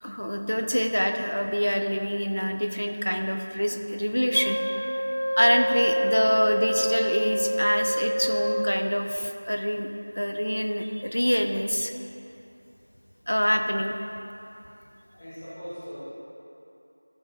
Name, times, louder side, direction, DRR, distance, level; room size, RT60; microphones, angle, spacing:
voice 1, 0.0-4.9 5.4-9.9 10.2-11.9 13.3-13.9, equal, 65° left, 5 dB, 0.7 m, -25 dB
Wind instrument woodwind instrument, 4.3-8.9, equal, 60° right, 0.9 m, -27 dB
voice 2, 15.1-16.0, equal, 5° left, -13 dB, 0.4 m, -39 dB
13.0 x 5.0 x 3.9 m, 2.8 s
figure-of-eight pair, 180°, 0 cm